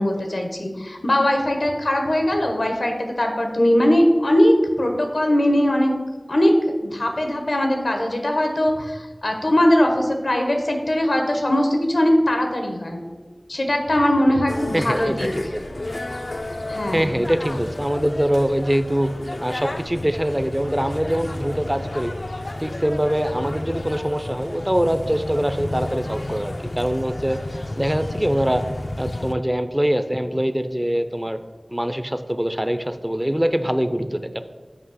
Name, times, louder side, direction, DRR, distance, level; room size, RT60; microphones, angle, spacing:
voice 1, 0.0-5.9 6.3-6.5 6.8-13.0 13.5-15.3 16.7-17.2, left 1 dB, 90° left, 3 dB, 0.9 m, -20 dB
sound 1, 14.5-29.3, left 1 dB, 65° left, 0.4 m, -31 dB
voice 2, 14.7-15.6 16.9-19.1 19.4-22.1 22.6-28.6 29.0-31.4 31.7-34.4, equal, 15° right, 10 dB, 0.4 m, -23 dB
7.9 x 2.8 x 5.6 m, 1.3 s
wide cardioid pair, 45°, 0 cm